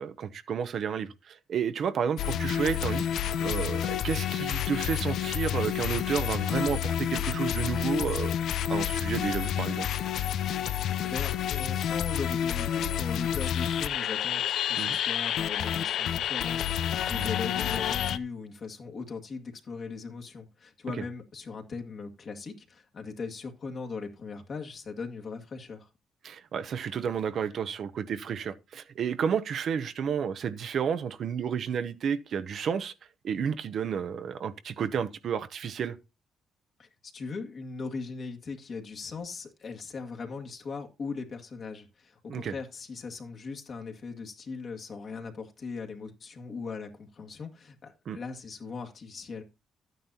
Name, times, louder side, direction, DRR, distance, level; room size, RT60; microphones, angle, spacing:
voice 1, 0.0-3.0 3.4-8.3 8.7-9.9 14.8-15.0 17.1-17.3 26.2-32.9 33.2-36.0 42.3-42.5 48.1-48.2, right 7 dB, 60° right, 0.8 m, -31 dB
sound 1, 2.2-18.2, left 10 dB, 75° left, 0.5 m, -29 dB
voice 2, 11.0-25.9 36.8-49.4, left 4 dB, 50° left, 1.9 m, -39 dB
12.0 x 9.2 x 2.8 m
cardioid pair, 90°, 0 cm